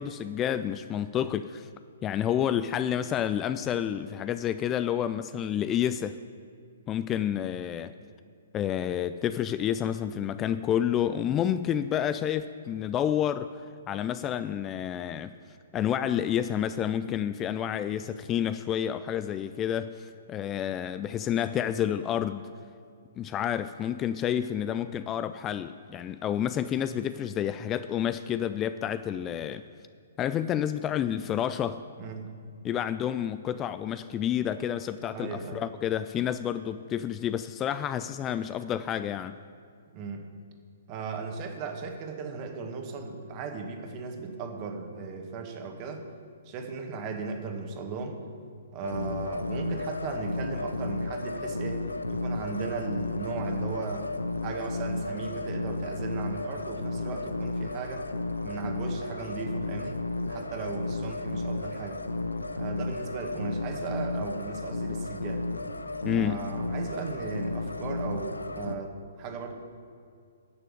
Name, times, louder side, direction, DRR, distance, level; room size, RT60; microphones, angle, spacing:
voice 1, 0.0-1.7 2.0-6.2 6.9-8.0 8.5-13.5 13.9-15.3 15.7-22.4 23.2-29.6 30.2-31.8 32.6-39.3 66.0-66.5, left 10 dB, 20° left, 12 dB, 0.3 m, -29 dB
voice 2, 32.0-32.3 35.1-35.6 39.9-40.2 40.9-46.0 46.4-48.2 48.7-54.1 54.4-58.1 58.4-60.0 60.3-62.0 62.5-65.5 66.1-69.6, right 4 dB, 35° right, 4 dB, 1.6 m, -36 dB
sound 1, 48.8-68.7, left 2 dB, 90° left, 0.6 m, -33 dB
10.0 x 6.7 x 8.4 m, 2.3 s
figure-of-eight pair, 125°, 0 cm